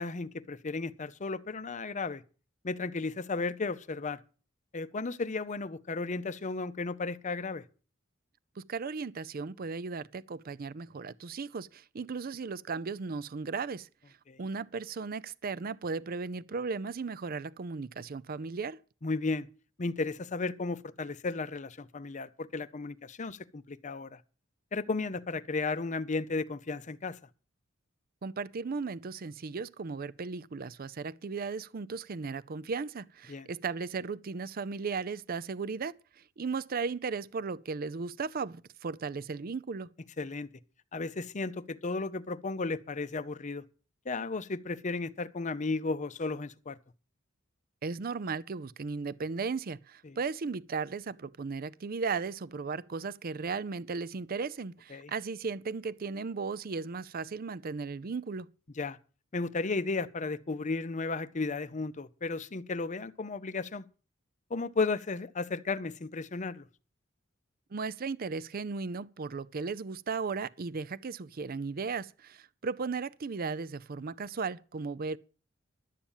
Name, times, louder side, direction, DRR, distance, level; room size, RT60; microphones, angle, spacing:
voice 1, 0.0-2.2 2.6-4.2 4.7-7.6 14.3-14.4 19.0-19.5 19.8-24.2 24.7-27.2 33.3-33.5 40.2-40.5 40.9-43.6 44.1-46.8 50.0-50.2 54.9-55.1 58.8-59.0 59.3-63.9 64.5-66.7, left 3 dB, 35° left, 0.6 m, -34 dB
voice 2, 8.6-18.8 28.2-39.9 47.8-58.5 67.7-75.2, right 4 dB, 45° right, 0.5 m, -36 dB
12.0 x 8.6 x 7.2 m
head